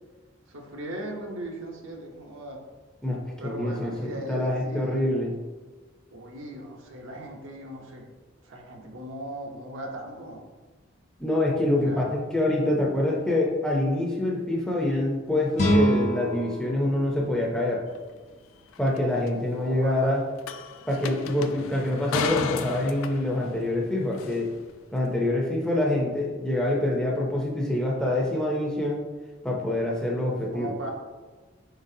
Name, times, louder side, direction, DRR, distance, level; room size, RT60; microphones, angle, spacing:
voice 1, 0.5-2.6 3.4-5.1 6.1-8.0 8.4-10.5 11.8-12.1 19.6-20.2 30.5-30.9, right 1 dB, 75° right, 1 dB, 0.7 m, -38 dB
voice 2, 3.0-5.4 11.2-17.8 18.8-20.2 20.9-24.5 24.9-29.0 29.4-30.7, left 1 dB, 5° left, -3 dB, 0.5 m, -26 dB
sound 1, 15.5-18.6, equal, 35° left, 0.8 m, -27 dB
sound 2, 18.0-18.1 18.7-19.0 19.3-19.4 20.4-24.7, left 6 dB, 85° left, 0.3 m, -35 dB
4.6 x 3.9 x 2.7 m, 1.3 s
head